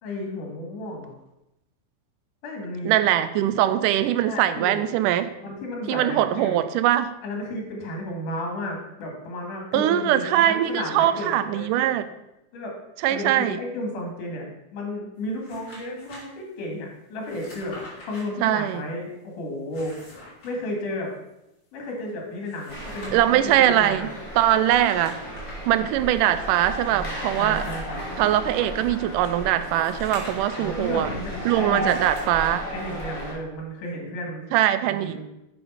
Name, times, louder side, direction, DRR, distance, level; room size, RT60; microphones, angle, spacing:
voice 1, 0.0-1.1 2.4-2.9 3.7-3.8 4.3-4.8 5.4-6.6 7.2-12.0 12.5-12.8 13.1-20.0 20.4-21.1 21.7-24.1 26.9-28.0 30.5-31.8 32.7-34.4 34.8-35.2, left 1 dB, 80° left, 0 dB, 3.6 m, -33 dB
voice 2, 2.9-5.3 5.9-7.1 9.7-12.1 13.0-13.6 18.4-18.8 23.1-24.1 24.4-25.2 25.7-27.7 28.2-31.1 31.5-32.6 34.5-35.2, right 12 dB, 90° right, 12 dB, 2.2 m, -22 dB
sound 1, 15.2-16.2 17.2-18.2 19.5-20.5 22.3-23.4 24.6-25.6 26.2-26.3 27.0-28.3 29.2-30.7 31.7-32.2, left 1 dB, 45° left, 3.9 m, -45 dB
sound 2, 22.7-33.3, right 1 dB, 10° left, 2.4 m, -34 dB
7.5 x 6.6 x 5.6 m, 0.91 s
omnidirectional pair, 3.6 m